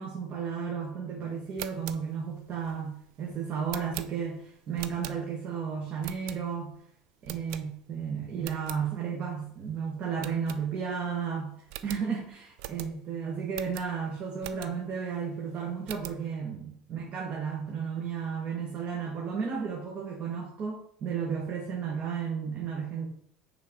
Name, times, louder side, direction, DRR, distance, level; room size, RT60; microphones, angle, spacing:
voice 1, 0.0-6.7 7.2-11.5 11.8-23.1, right 6 dB, 45° right, -2 dB, 1.5 m, -33 dB
sound 1, 1.4-5.6 6.0-6.8 7.2-8.0 8.3-8.8 9.3-9.4 9.6-9.7 10.2-11.1 11.3-11.4 11.7-15.0 15.4-16.3, right 14 dB, 70° right, 0.4 m, -43 dB
5.9 x 3.9 x 5.1 m, 0.67 s
hypercardioid pair, 75°, 3 cm